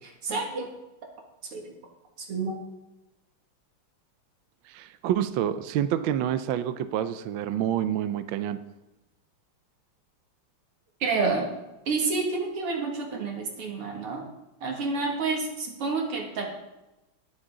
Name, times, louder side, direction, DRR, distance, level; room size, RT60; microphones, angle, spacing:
voice 1, 0.2-0.7 1.5-1.7 2.3-2.6 11.0-11.5 11.9-14.2 14.6-16.5, right 4 dB, 90° right, 1 dB, 3.1 m, -29 dB
voice 2, 4.7-8.6, right 10 dB, 75° right, 11 dB, 1.3 m, -28 dB
19.0 x 8.5 x 3.8 m, 0.98 s
omnidirectional pair, 2.4 m